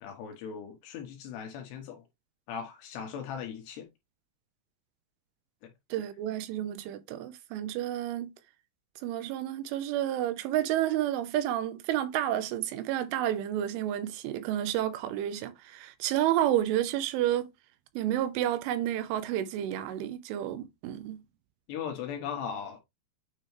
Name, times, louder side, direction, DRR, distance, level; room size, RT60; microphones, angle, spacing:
voice 1, 0.0-2.0 2.5-3.9 5.6-5.7 21.7-22.8, left 7 dB, 70° left, 3.0 m, -38 dB
voice 2, 5.9-8.3 9.0-17.5 18.0-21.3, right 12 dB, 90° right, 3.3 m, -30 dB
9.3 x 3.8 x 3.1 m
omnidirectional pair, 5.5 m